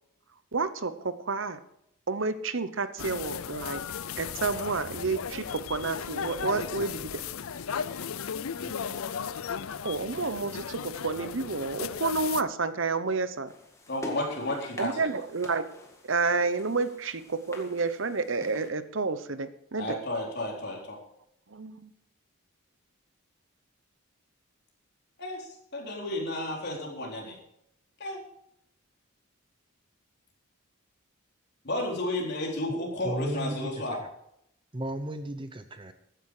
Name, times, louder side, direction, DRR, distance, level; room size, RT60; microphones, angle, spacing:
voice 1, 0.5-1.6 2.1-3.8 4.2-7.2 9.8-13.5 14.8-15.7 16.0-19.9 21.5-21.9, right 4 dB, 60° right, 13 dB, 0.9 m, -30 dB
sound 1, 3.0-12.4, left 7 dB, 80° left, 0.5 m, -35 dB
voice 2, 8.5-8.9 13.9-15.1 19.8-21.0 25.2-27.4 28.0-28.2 31.6-34.0, left 1 dB, 50° left, -1 dB, 4.1 m, -32 dB
sound 2, 13.5-18.7, left 1 dB, 15° left, 1.9 m, -46 dB
voice 3, 33.0-33.7 34.0-34.1 34.7-35.9, right 1 dB, 25° right, 10 dB, 0.7 m, -34 dB
14.5 x 10.5 x 4.9 m, 0.75 s
head